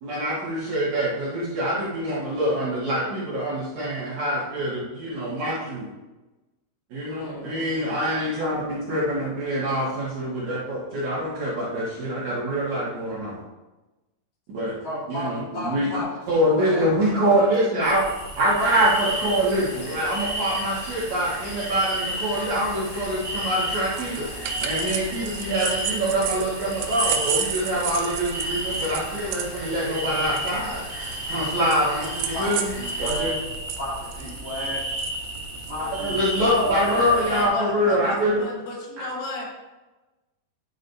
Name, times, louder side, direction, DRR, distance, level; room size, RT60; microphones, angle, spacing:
voice 1, 0.0-5.9 6.9-13.4 14.5-14.8 15.1-15.9 16.3-18.1 18.4-24.3 24.6-30.8 31.3-33.3 35.8-38.4 39.0-39.1, equal, 55° right, -7 dB, 2.5 m, -25 dB
voice 2, 7.2-7.9 37.2-39.5, left 2 dB, 80° left, -1 dB, 3.5 m, -34 dB
voice 3, 14.8-17.6 32.3-33.4 33.8-34.8 35.7-37.3, left 1 dB, 20° left, -8 dB, 2.8 m, -33 dB
sound 1, 17.8-37.5, right 1 dB, 35° right, 1.5 m, -33 dB
sound 2, 18.6-33.1, left 1 dB, 50° left, 1.9 m, -40 dB
sound 3, 23.7-33.2 33.5-35.8, right 10 dB, 85° right, 2.8 m, -31 dB
10.5 x 6.3 x 2.7 m, 1.1 s
omnidirectional pair, 4.8 m